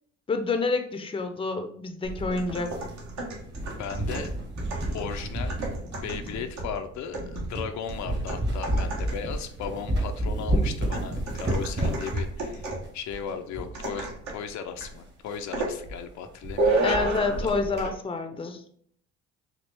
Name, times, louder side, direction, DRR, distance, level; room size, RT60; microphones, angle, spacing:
voice 1, 0.3-2.7 16.8-18.6, left 3 dB, 15° left, 6 dB, 0.6 m, -28 dB
sound 1, 2.0-3.2 3.5-6.5 7.0-7.1 7.5-7.7 8.1-14.1 14.4-14.5 14.7-14.8 15.3-15.4 15.8-16.0 16.2-16.6 16.9-17.9, right 1 dB, 35° right, 1.4 m, -31 dB
sound 2, 2.3-9.4 10.9-12.9 13.7-14.5 14.8-15.0 15.5-15.8 16.6-17.5 17.8-18.0, right 2 dB, 60° right, 1.2 m, -32 dB
voice 2, 3.7-4.3 4.9-5.6 5.9-12.7 12.9-17.5, left 7 dB, 60° left, 6 dB, 0.5 m, -36 dB
4.4 x 2.4 x 3.3 m, 0.64 s
supercardioid pair, 75°, 31 cm